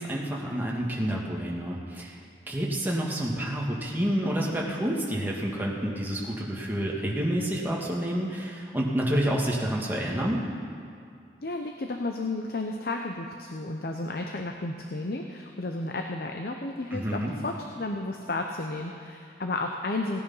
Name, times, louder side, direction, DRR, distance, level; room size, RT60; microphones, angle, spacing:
voice 1, 0.0-2.2 2.5-10.4 16.9-17.3, equal, 10° right, -3 dB, 1.8 m, -29 dB
voice 2, 11.4-20.2, left 2 dB, 60° left, 3 dB, 0.8 m, -32 dB
17.0 x 9.6 x 5.6 m, 2.4 s
head